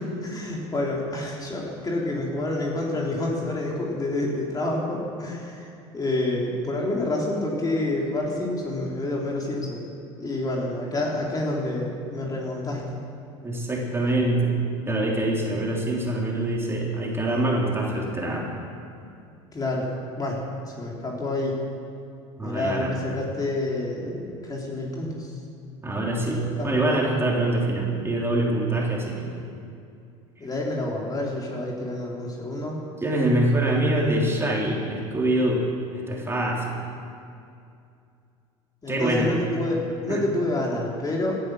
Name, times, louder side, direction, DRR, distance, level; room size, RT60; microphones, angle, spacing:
voice 1, 0.2-9.8 10.2-13.0 19.5-19.9 20.2-21.6 22.4-25.3 26.3-26.8 30.4-32.8 38.8-41.4, left 2 dB, 25° left, -2 dB, 3.2 m, -28 dB
voice 2, 13.4-18.5 22.4-22.9 25.8-29.3 33.0-35.6 35.9-36.7 38.9-39.3 40.1-40.2, right 1 dB, 15° right, -2 dB, 3.6 m, -24 dB
17.0 x 11.0 x 6.3 m, 2.5 s
hypercardioid pair, 80°, 15 cm